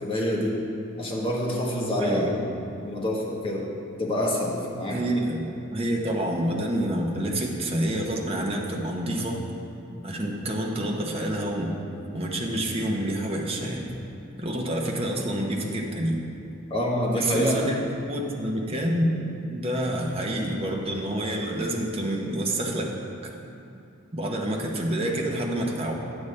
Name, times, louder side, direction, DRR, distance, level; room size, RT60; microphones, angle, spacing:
voice 1, 0.0-0.6 1.0-2.3 2.8-3.7 4.0-5.0 16.7-17.6, left 1 dB, 30° left, -4 dB, 1.2 m, -26 dB
voice 2, 1.9-2.3 4.9-9.4 10.0-11.7 12.1-13.9 14.4-16.2 17.2-17.8 18.1-19.1 19.5-23.1 24.1-25.9, right 1 dB, 30° right, 0 dB, 0.8 m, -28 dB
8.4 x 8.0 x 3.3 m, 2.6 s
head